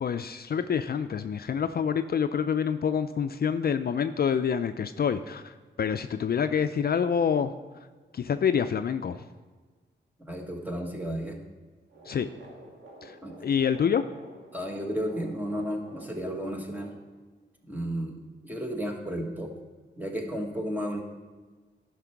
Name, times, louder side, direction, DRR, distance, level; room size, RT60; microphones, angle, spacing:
voice 1, 0.0-7.5 8.1-9.2 12.1-12.3 13.0-13.2 13.4-14.0, left 7 dB, 55° left, 10 dB, 0.4 m, -27 dB
voice 2, 10.3-11.4 13.2-13.3 14.5-16.9 17.6-18.2 18.4-19.5 20.0-21.0, equal, 10° right, 2 dB, 1.5 m, -33 dB
sound 1, 11.9-16.9, right 1 dB, 85° right, 2.3 m, -50 dB
11.0 x 5.9 x 4.6 m, 1.4 s
cardioid pair, 75°, 20 cm